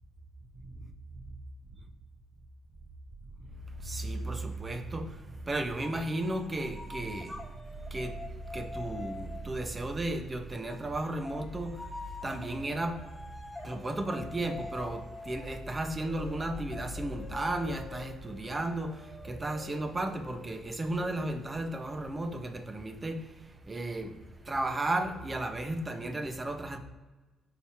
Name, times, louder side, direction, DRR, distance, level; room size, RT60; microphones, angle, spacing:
voice 1, 3.8-7.4 7.9-11.9 12.2-13.0 13.6-23.3 23.7-24.1 24.4-26.8, right 1 dB, 25° right, 1.0 m, -34 dB
sound 1, 5.8-9.7 10.7-22.0, left 3 dB, 5° left, 1.7 m, -47 dB
5.9 x 4.2 x 4.3 m
figure-of-eight pair, 40°, 0 cm